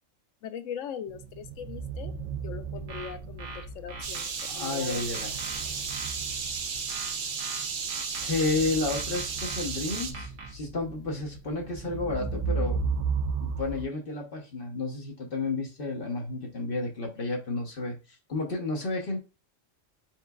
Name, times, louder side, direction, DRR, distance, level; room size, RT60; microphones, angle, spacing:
voice 1, 0.4-2.1 2.4-5.3, left 8 dB, 85° left, 10 dB, 0.9 m, -40 dB
sound 1, 1.1-13.8, right 5 dB, 75° right, 0.9 m, -35 dB
sound 2, 2.8-4.5 4.9-6.2 6.9-8.5 8.9-10.5, right 3 dB, 90° right, 1.3 m, -42 dB
sound 3, 4.0-10.1, right 5 dB, 50° right, 0.7 m, -34 dB
voice 2, 4.5-5.3 8.2-12.9 13.4-19.2, left 3 dB, 50° left, 1 dB, 1.0 m, -31 dB
4.5 x 3.8 x 2.3 m, 0.30 s
omnidirectional pair, 1.3 m